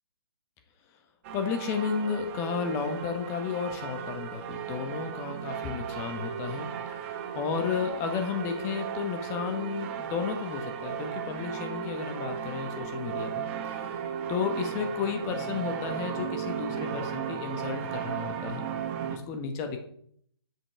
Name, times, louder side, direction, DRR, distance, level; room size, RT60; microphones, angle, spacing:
sound 1, 1.2-19.2, right 8 dB, 30° right, 1.0 m, -36 dB
voice 1, 1.3-7.0 7.3-14.0 14.3-18.7 19.1-19.8, left 6 dB, 20° left, 6 dB, 1.3 m, -33 dB
7.9 x 6.0 x 4.7 m, 0.64 s
figure-of-eight pair, 140°, 14 cm